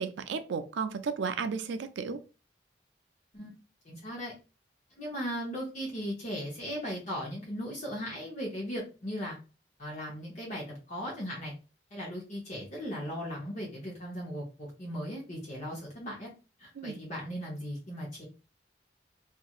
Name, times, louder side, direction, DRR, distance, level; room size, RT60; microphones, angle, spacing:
voice 1, 0.0-2.2 16.8-17.0, right 5 dB, 75° right, 10 dB, 0.4 m, -33 dB
voice 2, 3.8-4.3 5.0-9.4 9.8-11.5 11.9-16.3 16.6-18.2, equal, 40° left, -3 dB, 0.8 m, -37 dB
2.9 x 2.4 x 2.3 m, 0.33 s
head